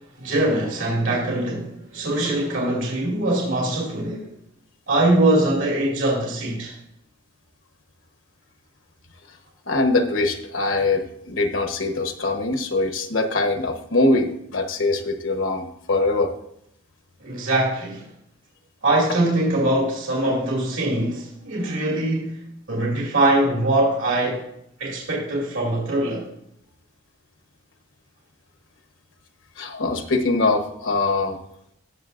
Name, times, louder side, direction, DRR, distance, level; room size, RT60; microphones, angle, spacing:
voice 1, 0.2-4.3 4.9-6.7 17.2-18.0 18.8-22.4 22.7-24.4 24.8-26.3, right 1 dB, 80° right, 2.4 m, -22 dB
voice 2, 9.7-16.3 29.6-31.4, left 2 dB, 80° left, 1.1 m, -22 dB
17.5 x 6.6 x 2.5 m
head